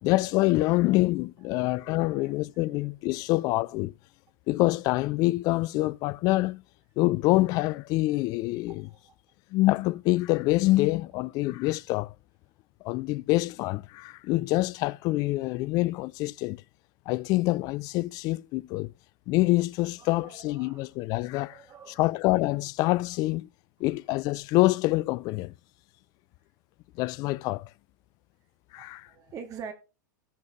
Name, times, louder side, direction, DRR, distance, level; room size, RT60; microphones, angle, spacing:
voice 1, 0.0-3.9 4.5-6.6 7.0-8.9 9.5-12.1 12.8-16.6 17.1-18.9 19.3-21.6 21.9-23.5 23.8-25.5 27.0-27.7 28.7-29.1, left 19 dB, 35° left, 0.4 m, -26 dB
voice 2, 1.6-2.3 2.7-2.8 3.1-3.3 8.7-9.1 20.0-20.9 21.5-22.0 28.8-29.7, right 6 dB, 30° right, 2.1 m, -46 dB
18.5 x 6.3 x 2.9 m
figure-of-eight pair, 95°, 10 cm